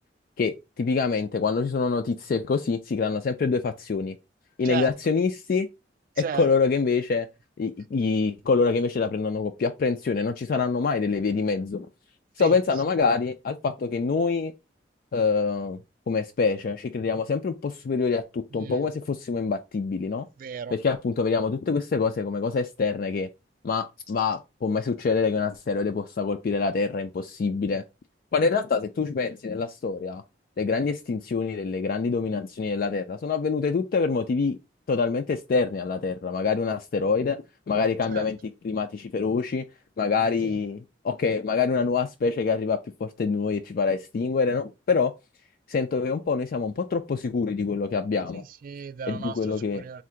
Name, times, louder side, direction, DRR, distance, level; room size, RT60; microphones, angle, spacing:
voice 1, 0.4-4.2 4.6-5.7 6.2-7.3 7.6-11.9 12.4-14.5 15.1-15.8 16.1-20.3 20.7-23.3 23.6-27.8 28.3-30.2 30.6-34.6 34.9-39.6 40.0-45.1 45.7-48.4 49.1-49.8, left 4 dB, 50° left, 0.3 m, -26 dB
voice 2, 20.4-20.7 38.1-38.2 48.3-50.0, right 6 dB, 50° right, 0.3 m, -35 dB
3.7 x 2.5 x 4.4 m
head